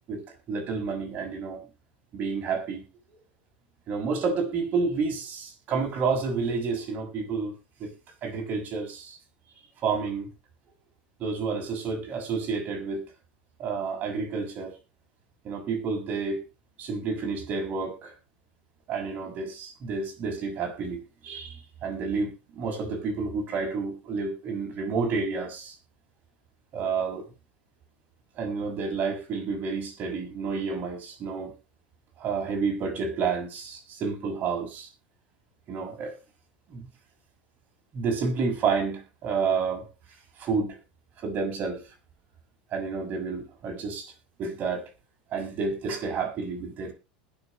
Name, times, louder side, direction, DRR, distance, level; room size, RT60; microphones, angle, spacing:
voice 1, 0.0-1.7 2.1-2.8 3.9-7.5 7.8-7.9 8.2-9.2 9.8-10.3 11.2-13.0 13.6-14.8 15.4-16.4 16.8-18.1 18.9-25.8 26.7-27.3 28.3-31.5 32.2-34.9 35.7-36.1 36.7-36.9 37.9-39.9 40.4-40.8 41.2-41.9 42.7-44.1 44.4-44.9 45.3-46.9, right 4 dB, 40° right, 6.3 m, -30 dB
20.5 x 7.1 x 3.1 m
hypercardioid pair, 95°, 5 cm